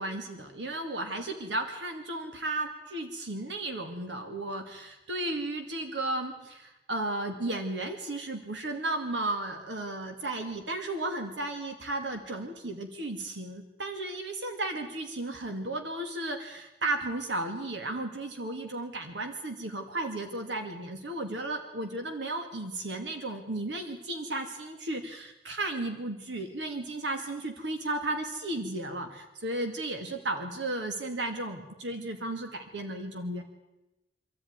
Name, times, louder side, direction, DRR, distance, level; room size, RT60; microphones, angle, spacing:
voice 1, 0.0-33.4, right 2 dB, 80° right, 5 dB, 2.4 m, -34 dB
25.5 x 14.0 x 9.7 m, 1.0 s
head